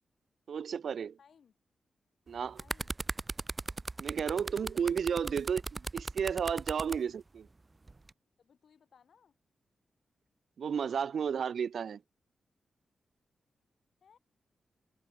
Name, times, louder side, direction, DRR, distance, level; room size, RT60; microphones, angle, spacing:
voice 1, 0.5-1.2 2.3-2.6 4.0-7.5 10.6-12.0, right 7 dB, 65° right, 0.7 m, -33 dB
voice 2, 1.2-1.6 2.6-2.9 8.4-9.4 14.0-14.2, left 7 dB, 65° left, 7.9 m, -63 dB
sound 1, 2.3-7.0 7.9-8.1, right 3 dB, 25° right, 1.0 m, -37 dB
wide cardioid pair, 120°, 0 cm